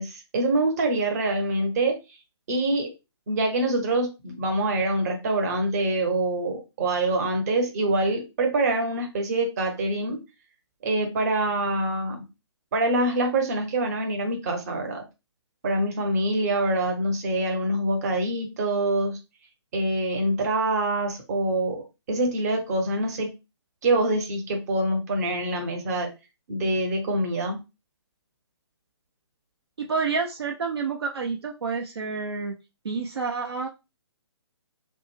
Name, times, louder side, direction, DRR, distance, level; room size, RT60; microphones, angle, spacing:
voice 1, 0.0-2.0 2.5-2.9 3.3-10.2 10.8-12.3 12.7-15.0 15.6-19.2 19.7-21.8 22.1-23.3 23.8-26.1 26.5-27.6, right 2 dB, 35° right, 3 dB, 0.9 m, -25 dB
voice 2, 29.8-32.5 32.8-33.7, right 5 dB, 65° right, 3 dB, 0.5 m, -29 dB
2.5 x 2.1 x 3.1 m, 0.26 s
figure-of-eight pair, 135°, 15 cm